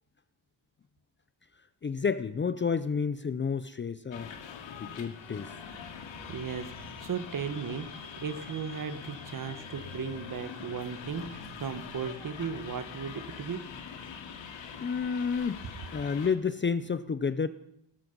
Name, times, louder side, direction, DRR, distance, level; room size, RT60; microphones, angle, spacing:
voice 1, 1.8-4.3 4.8-5.5 14.8-15.6 15.9-17.5, left 5 dB, 25° left, 13 dB, 0.5 m, -30 dB
sound 1, 4.1-16.3, left 6 dB, 85° left, 2.4 m, -44 dB
voice 2, 6.3-13.6, right 6 dB, 45° right, 10 dB, 1.5 m, -36 dB
19.5 x 13.0 x 5.3 m, 0.75 s
wide cardioid pair, 165°, 44 cm